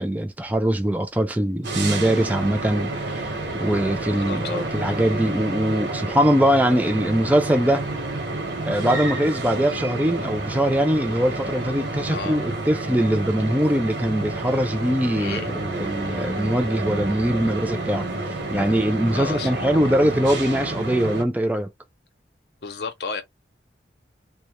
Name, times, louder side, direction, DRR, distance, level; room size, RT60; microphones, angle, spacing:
voice 1, 0.0-3.2 3.5-7.8 8.7-18.1 18.5-21.7, equal, 10° right, 0.4 m, -22 dB
sound 1, 1.6-21.2, right 2 dB, 70° right, 0.9 m, -29 dB
voice 2, 4.1-4.7 12.1-12.4 15.2-15.5 19.1-19.5 22.6-23.2, left 5 dB, 60° left, 0.5 m, -32 dB
2.2 x 2.1 x 2.9 m
head